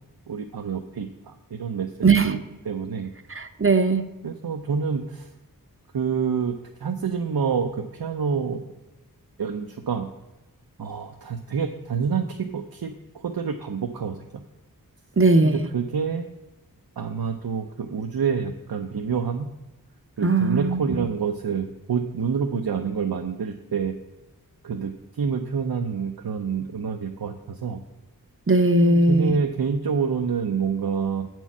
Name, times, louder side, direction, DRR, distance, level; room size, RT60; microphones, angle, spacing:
voice 1, 0.3-2.4 2.7-3.1 4.2-5.3 5.9-6.5 6.8-8.7 9.4-10.1 10.8-12.9 13.2-14.4 15.4-16.3 17.0-19.5 20.2-23.9 24.6-27.8 28.8-31.3, right 6 dB, 90° right, 4 dB, 0.7 m, -27 dB
voice 2, 2.0-2.3 3.3-4.0 15.2-15.7 20.2-21.1 28.5-29.4, right 2 dB, 35° right, 7 dB, 0.7 m, -19 dB
8.0 x 4.6 x 7.1 m, 1.1 s
wide cardioid pair, 65°, 35 cm